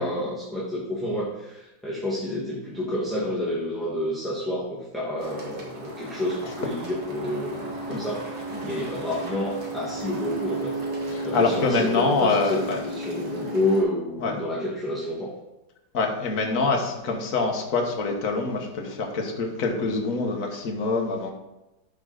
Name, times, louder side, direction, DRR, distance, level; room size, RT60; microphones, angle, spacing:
voice 1, 0.0-10.8 11.2-15.3, left 1 dB, ahead, -7 dB, 1.3 m, -29 dB
sound 1, 5.2-13.8, right 1 dB, 75° right, 2.5 m, -34 dB
voice 2, 11.1-12.8 14.2-14.3 15.9-21.3, left 3 dB, 55° left, 1 dB, 1.6 m, -25 dB
13.0 x 4.8 x 3.9 m, 0.99 s
omnidirectional pair, 1.9 m